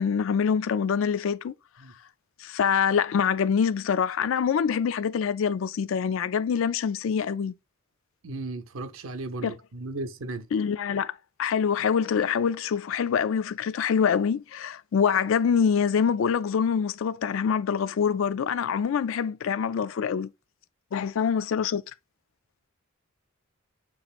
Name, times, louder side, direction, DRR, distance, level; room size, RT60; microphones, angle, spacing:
voice 1, 0.0-1.5 2.4-7.5 9.4-9.5 10.5-11.1 11.4-20.3 20.9-21.8, left 7 dB, 70° left, 0.3 m, -25 dB
voice 2, 8.2-10.5, right 2 dB, 75° right, 0.7 m, -35 dB
6.9 x 2.9 x 2.4 m
head